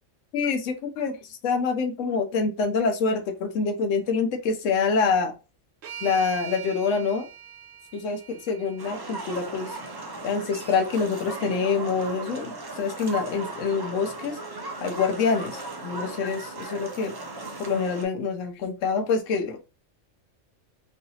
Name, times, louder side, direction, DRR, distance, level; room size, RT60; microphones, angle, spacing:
voice 1, 0.3-5.3 6.0-7.3 7.9-9.8 10.2-14.4 14.8-17.1 17.6-19.6, left 5 dB, 90° left, 5 dB, 1.0 m, -26 dB
sound 1, 5.8-10.0, right 8 dB, 65° right, 1.0 m, -42 dB
sound 2, 8.8-18.0, right 2 dB, 35° right, 0.4 m, -37 dB
3.1 x 2.8 x 2.7 m, 0.30 s
omnidirectional pair, 1.3 m